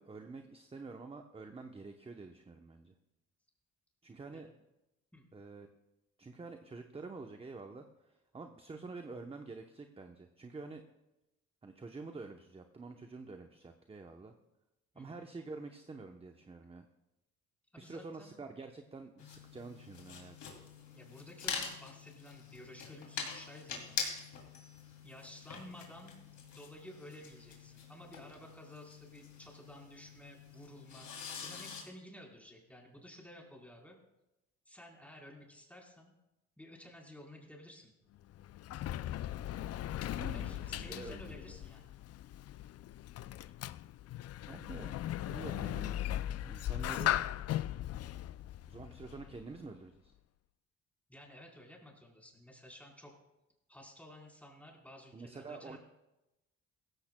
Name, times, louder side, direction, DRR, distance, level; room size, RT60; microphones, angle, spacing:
voice 1, 0.0-3.0 4.0-4.5 5.3-5.7 6.2-10.8 11.6-14.3 15.0-16.9 17.8-20.4 40.1-41.2 41.5-41.6 44.5-44.9 45.2-46.0 46.4-47.2 48.7-50.1 55.1-55.8, right 3 dB, 20° right, 5 dB, 0.8 m, -48 dB
voice 2, 17.7-18.4 20.9-24.0 25.0-26.2 26.5-34.0 34.7-36.1 36.6-37.9 40.2-41.9 51.1-53.1 53.7-55.8, left 1 dB, 5° left, -1 dB, 4.2 m, -53 dB
sound 1, 19.2-31.8, left 6 dB, 70° left, 2.9 m, -45 dB
Sliding door, 38.2-49.6, left 13 dB, 55° left, 0.4 m, -38 dB
16.5 x 14.5 x 2.2 m, 0.96 s
cardioid pair, 90°, 30 cm